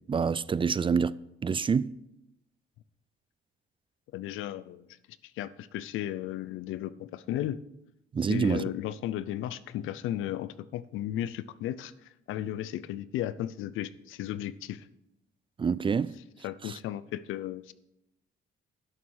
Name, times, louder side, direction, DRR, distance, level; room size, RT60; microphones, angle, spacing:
voice 1, 0.1-1.1 1.4-1.9 8.1-8.7 15.6-16.1 16.6-16.8, right 6 dB, 25° right, 0.3 m, -27 dB
voice 2, 4.1-4.9 5.4-7.6 8.3-11.9 12.3-14.8 16.4-17.7, left 12 dB, 90° left, 0.6 m, -35 dB
11.0 x 7.1 x 6.4 m
cardioid pair, 90°, 20 cm